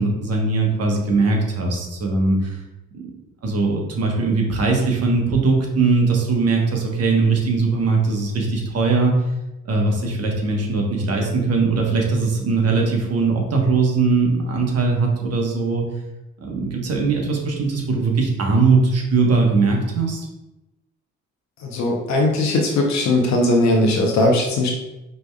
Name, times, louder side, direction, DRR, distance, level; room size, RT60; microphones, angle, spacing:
voice 1, 0.0-2.6 2.9-3.1 3.4-9.2 9.6-15.8 16.4-20.3, right 3 dB, 55° right, 0 dB, 1.1 m, -20 dB
voice 2, 21.6-24.7, left 2 dB, 65° left, 0 dB, 0.7 m, -19 dB
5.1 x 3.2 x 2.3 m, 0.95 s
cardioid pair, 90°, 30 cm